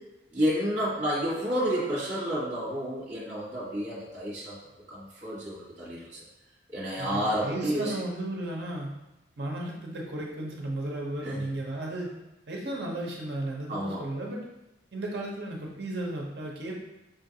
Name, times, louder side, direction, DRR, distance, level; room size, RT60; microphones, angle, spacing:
voice 1, 0.3-4.6 4.9-6.1 6.7-7.9 11.2-11.4 13.7-14.0, equal, 40° right, -6 dB, 1.4 m, -30 dB
voice 2, 7.0-8.9 9.4-12.1 12.5-14.4 14.9-16.7, right 1 dB, 60° right, -1 dB, 0.8 m, -34 dB
5.4 x 2.5 x 2.8 m, 0.96 s
head